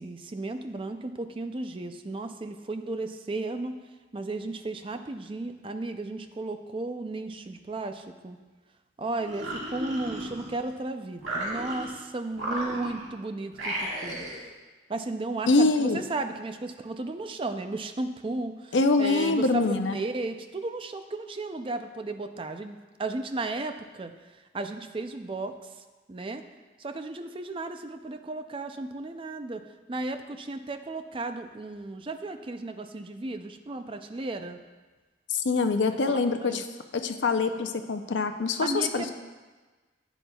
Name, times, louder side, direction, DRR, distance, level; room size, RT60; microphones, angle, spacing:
voice 1, 0.0-3.8 4.1-8.4 9.0-14.2 14.9-25.8 26.1-26.5 26.8-34.6 36.1-36.6 38.6-39.1, right 2 dB, 30° right, 7 dB, 0.4 m, -34 dB
sound 1, 9.2-10.7 11.2-12.0 12.3-13.1 13.5-14.4, right 1 dB, 90° right, 1.9 m, -34 dB
voice 2, 15.5-16.0 18.7-20.0 35.3-36.6 36.9-39.1, left 3 dB, 80° left, 7 dB, 0.6 m, -24 dB
11.0 x 9.1 x 2.3 m, 1.3 s
head